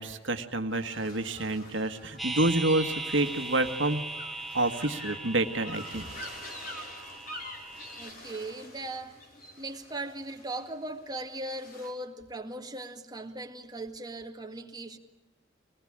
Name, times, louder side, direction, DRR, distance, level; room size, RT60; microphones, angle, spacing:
voice 1, 0.0-4.0 4.5-6.0, right 2 dB, 70° right, 1.6 m, -28 dB
sound 1, 0.7-11.9, left 1 dB, 50° left, 5.0 m, -46 dB
sound 2, 2.2-8.1, right 3 dB, ahead, 1.5 m, -39 dB
voice 2, 7.9-9.2 9.6-15.0, right 2 dB, 20° right, 1.9 m, -39 dB
25.5 x 19.5 x 8.8 m
head